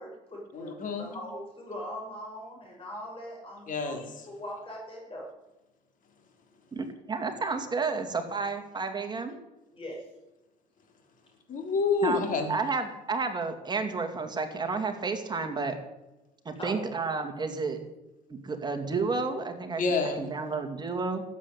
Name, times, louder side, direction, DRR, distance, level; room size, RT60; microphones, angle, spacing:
voice 1, 0.0-0.7 1.0-4.0 4.3-5.3 9.7-10.0 16.6-16.9, equal, 30° left, -1 dB, 6.0 m, -40 dB
voice 2, 0.5-1.1 3.7-4.3 11.5-12.5 19.8-20.3, left 4 dB, 50° left, 4 dB, 3.7 m, -29 dB
voice 3, 6.7-9.4 12.0-12.2 12.5-15.8 16.4-17.8 18.3-19.8 20.2-21.2, right 4 dB, 25° right, 5 dB, 2.5 m, -31 dB
13.5 x 8.4 x 9.9 m, 0.99 s
cardioid pair, 110°, 17 cm